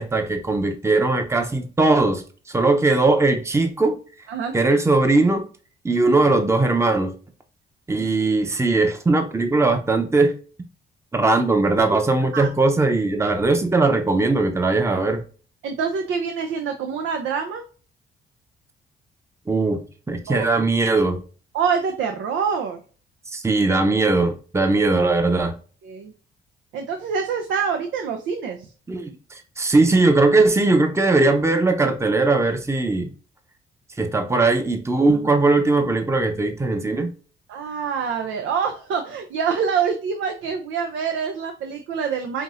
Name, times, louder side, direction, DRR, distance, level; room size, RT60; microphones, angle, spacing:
voice 1, 0.0-4.0 4.5-5.5 5.8-7.1 7.9-10.3 11.1-15.2 19.5-19.8 20.1-21.2 23.3-25.5 28.9-29.1 29.6-33.1 34.0-37.1, right 3 dB, 15° right, 0.8 m, -19 dB
voice 2, 15.6-17.6 20.3-20.5 21.5-22.8 25.8-26.1 26.7-28.7 37.5-42.4, right 6 dB, 80° right, 0.7 m, -25 dB
5.8 x 2.7 x 2.5 m
cardioid pair, 90°, 20 cm